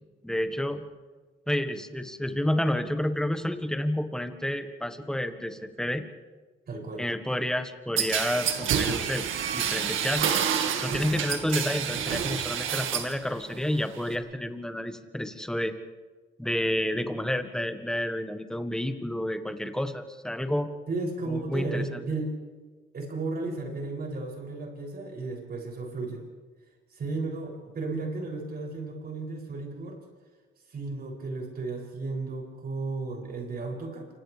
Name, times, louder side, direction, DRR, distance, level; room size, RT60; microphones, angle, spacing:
voice 1, 0.2-0.8 1.5-6.0 7.0-9.2 9.5-10.3 10.8-15.7 16.4-20.7 21.3-22.0, left 1 dB, 5° left, 7 dB, 1.6 m, -30 dB
voice 2, 6.7-7.0 20.9-22.3 22.9-26.2 26.9-30.0 30.7-34.1, right 3 dB, 50° right, -1 dB, 7.6 m, -34 dB
sound 1, 8.0-13.2 13.5-14.1, right 8 dB, 80° right, 2.0 m, -28 dB
28.5 x 25.5 x 3.5 m, 1.3 s
cardioid pair, 90°, 20 cm